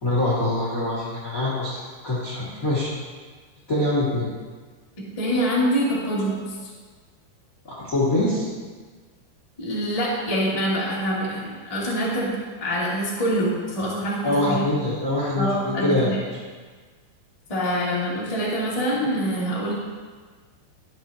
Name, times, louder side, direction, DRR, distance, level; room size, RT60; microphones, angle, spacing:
voice 1, 0.0-2.9 3.7-4.3 7.6-8.5 14.2-16.1, left 2 dB, 40° left, -7 dB, 1.1 m, -24 dB
voice 2, 5.0-6.6 9.6-12.3 12.6-14.6 15.3-16.2 17.5-19.7, equal, 15° left, -8 dB, 1.1 m, -25 dB
13.0 x 8.9 x 2.9 m, 1.5 s
omnidirectional pair, 5.3 m